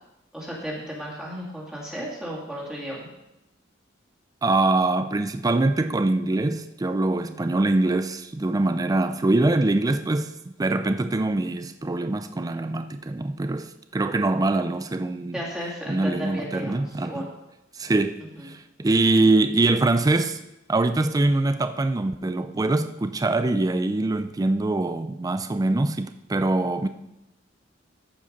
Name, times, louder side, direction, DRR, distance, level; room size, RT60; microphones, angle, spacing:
voice 1, 0.3-3.1 7.2-7.4 15.3-17.3 18.4-18.5, equal, 5° right, 2.3 m, -34 dB
voice 2, 4.4-15.4 15.9-17.3 17.7-20.4 20.7-26.9, right 2 dB, 20° right, 0.4 m, -23 dB
14.0 x 5.1 x 5.2 m
head